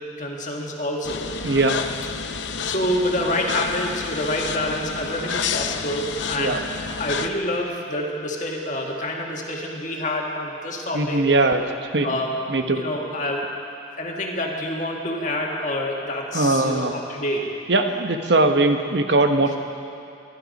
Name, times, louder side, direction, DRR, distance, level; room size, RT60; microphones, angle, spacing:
voice 1, 0.2-1.3 2.4-6.6 7.0-11.2 12.0-12.4 12.8-13.4 14.0-17.5, left 1 dB, 45° left, -1 dB, 1.7 m, -27 dB
sound 1, 1.0-7.3, left 5 dB, 85° left, 0.7 m, -29 dB
voice 2, 1.4-1.7 6.4-6.6 10.9-11.6 11.9-12.2 12.5-12.8 16.3-17.0 17.7-19.6, right 2 dB, 70° right, 6 dB, 1.1 m, -20 dB
24.0 x 11.0 x 5.3 m, 2.5 s
head